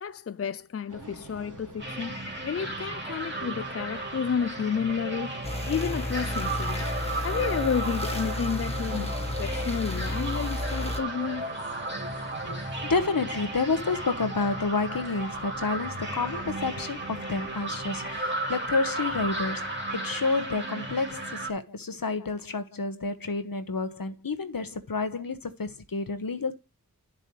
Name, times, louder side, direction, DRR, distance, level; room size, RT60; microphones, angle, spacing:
voice 1, 0.0-6.9 7.2-11.5, left 7 dB, 40° left, 0.4 m, -31 dB
sound 1, 0.9-18.2, right 2 dB, 55° right, 1.6 m, -47 dB
sound 2, 1.8-21.5, right 2 dB, 30° right, 2.7 m, -34 dB
sound 3, 5.4-11.0, left 1 dB, 15° left, 1.5 m, -32 dB
voice 2, 12.4-26.5, left 3 dB, 65° left, 1.3 m, -30 dB
11.0 x 7.4 x 3.2 m
wide cardioid pair, 50°, 36 cm